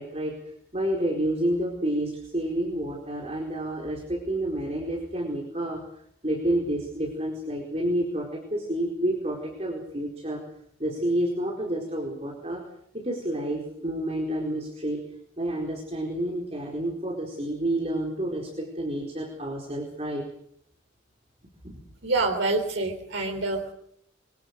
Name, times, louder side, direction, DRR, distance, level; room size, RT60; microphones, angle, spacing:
voice 1, 0.0-5.9 6.2-10.4 10.8-12.6 12.9-15.0 15.4-20.3 21.6-21.8, right 1 dB, 30° right, -1 dB, 4.5 m, -29 dB
voice 2, 22.0-23.7, right 2 dB, 65° right, 2 dB, 3.6 m, -26 dB
27.5 x 23.5 x 6.7 m, 0.69 s
head